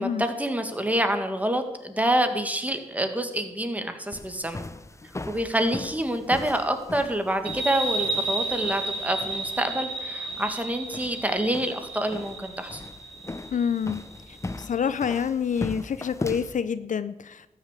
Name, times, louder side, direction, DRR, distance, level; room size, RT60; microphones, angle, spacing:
voice 1, 0.0-4.6 5.3-12.8, right 1 dB, 10° right, 1.8 m, -27 dB
sound 1, 4.1-16.6, left 2 dB, 20° left, 0.7 m, -39 dB
sound 2, 7.4-14.6, right 2 dB, 35° right, 4.7 m, -32 dB
voice 2, 13.5-14.1 14.6-17.5, left 7 dB, 65° left, 0.5 m, -27 dB
13.0 x 6.4 x 8.3 m
cardioid pair, 60°, 14 cm